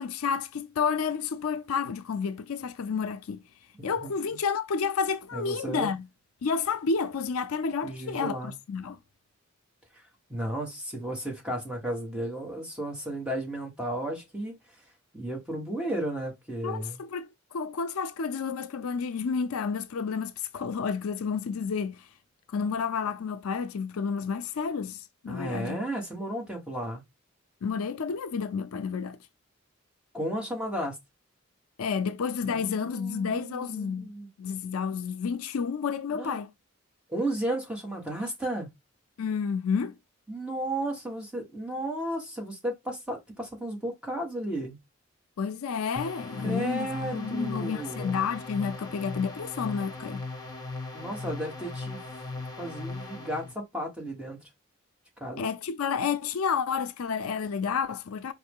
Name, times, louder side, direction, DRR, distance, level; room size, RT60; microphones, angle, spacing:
voice 1, 0.0-3.4 3.8-6.1 6.4-9.0 16.6-22.1 22.5-25.8 27.6-29.2 31.8-34.1 34.4-36.5 39.2-40.0 45.4-50.2 55.4-58.3, left 6 dB, 85° left, 0.5 m, -30 dB
voice 2, 3.7-4.1 5.3-5.9 7.8-8.5 9.9-10.0 10.3-14.8 15.1-17.0 25.3-27.0 30.1-31.0 32.4-34.3 36.1-36.4 37.1-38.7 40.3-44.8 46.4-48.2 50.9-52.0 52.6-54.4 55.2-55.4, right 1 dB, 5° right, 1.4 m, -34 dB
sound 1, 46.0-53.5, left 3 dB, 15° left, 1.5 m, -38 dB
4.6 x 3.1 x 3.5 m
head